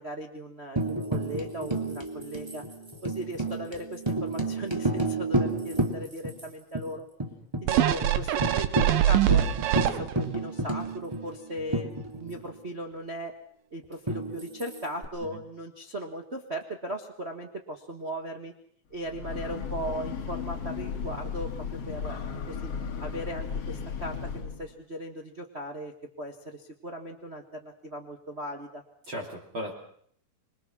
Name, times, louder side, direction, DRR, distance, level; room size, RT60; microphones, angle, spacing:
voice 1, 0.0-2.6 3.0-7.1 7.6-9.5 9.7-13.4 13.7-18.5 18.9-22.7 23.0-28.8, right 1 dB, 60° right, 3 dB, 0.6 m, -38 dB
Tambourine, 0.8-6.4 6.7-6.8 7.2-7.7 8.0-8.1 8.4-12.5 14.1-15.0, right 2 dB, 10° right, 2.3 m, -31 dB
sound 1, 7.7-10.4 10.9-11.0, right 11 dB, 85° right, 3.0 m, -24 dB
Breathing / Train, 18.9-24.7, left 6 dB, 50° left, 2.5 m, -35 dB
voice 2, 29.1-29.7, equal, 35° right, -1 dB, 3.5 m, -37 dB
26.0 x 22.5 x 6.2 m, 0.63 s
omnidirectional pair, 4.1 m